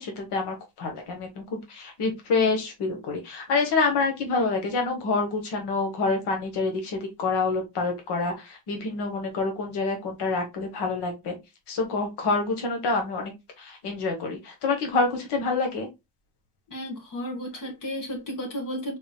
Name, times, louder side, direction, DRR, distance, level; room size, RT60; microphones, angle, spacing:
voice 1, 0.0-11.3 11.7-13.3 13.6-15.9, left 3 dB, 65° left, 1.5 m, -27 dB
voice 2, 16.7-19.0, equal, 45° left, 1.6 m, -33 dB
3.8 x 3.8 x 2.3 m
cardioid pair, 105°, 44 cm